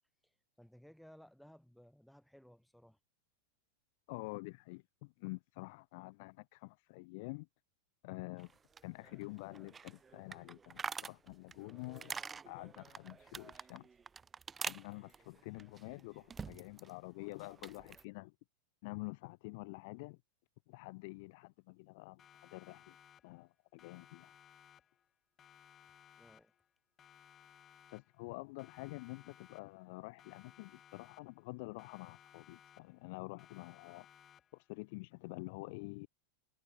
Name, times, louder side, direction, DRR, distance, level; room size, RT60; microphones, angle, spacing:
voice 1, 0.2-3.0 26.2-26.5, equal, ahead, 2.1 m, -60 dB
voice 2, 4.1-7.5 8.0-8.5 8.8-13.9 14.6-18.3 18.8-20.2 20.7-23.0 23.2-24.3 27.9-34.1 34.5-36.1, left 26 dB, 50° left, 0.5 m, -48 dB
sound 1, 8.4-16.9 17.2-18.0, right 5 dB, 15° right, 0.7 m, -47 dB
Siren, 22.2-23.5 23.8-25.1 25.4-26.7 27.0-28.3 28.6-29.9 30.2-31.5 31.8-33.1 33.4-34.7, left 9 dB, 25° left, 2.3 m, -62 dB
figure-of-eight pair, 90°, 0 cm